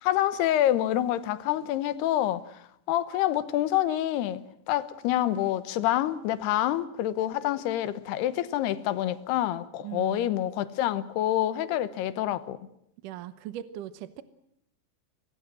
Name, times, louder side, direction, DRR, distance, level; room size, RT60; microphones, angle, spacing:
voice 1, 0.0-4.4 4.7-12.6, left 13 dB, 80° left, 3.0 m, -27 dB
voice 2, 9.8-10.3 13.0-14.2, right 12 dB, 70° right, 2.0 m, -39 dB
25.0 x 19.5 x 7.5 m
omnidirectional pair, 4.8 m